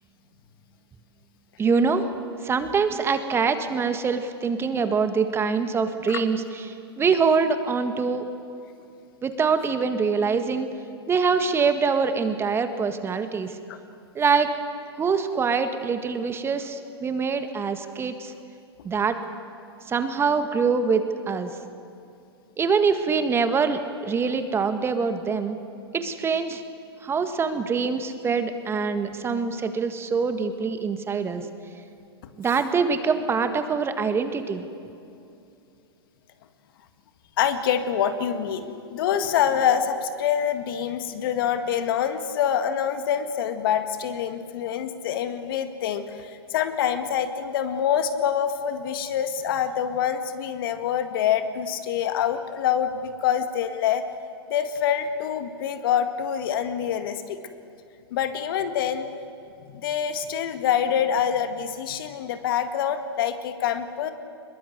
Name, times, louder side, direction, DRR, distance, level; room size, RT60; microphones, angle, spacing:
voice 1, 1.6-2.1 2.4-6.7 7.0-8.3 9.2-10.7 11.1-13.5 14.1-14.5 15.0-18.3 18.8-19.2 19.9-21.5 22.6-25.6 25.9-26.6 27.0-31.5 32.4-34.6, right 5 dB, 20° right, 8 dB, 1.6 m, -24 dB
voice 2, 37.4-54.0 54.5-57.4 58.1-59.1 59.7-64.1, left 9 dB, 55° left, 8 dB, 1.9 m, -26 dB
23.0 x 21.5 x 8.1 m, 2.7 s
hypercardioid pair, 110°, 14 cm